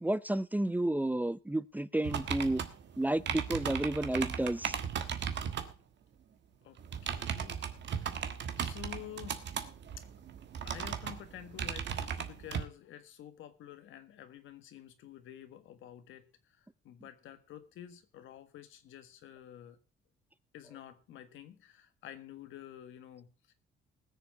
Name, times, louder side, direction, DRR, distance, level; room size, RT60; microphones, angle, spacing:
voice 1, 0.0-2.6 3.0-4.8, right 1 dB, 10° right, 0.6 m, -31 dB
sound 1, 2.0-5.7 6.8-12.7, right 8 dB, 65° right, 1.5 m, -37 dB
voice 2, 6.6-8.3 8.6-9.5 10.0-10.1 10.6-19.8 20.5-23.5, left 10 dB, 80° left, 1.6 m, -50 dB
20.0 x 7.1 x 4.6 m
cardioid pair, 90°, 20 cm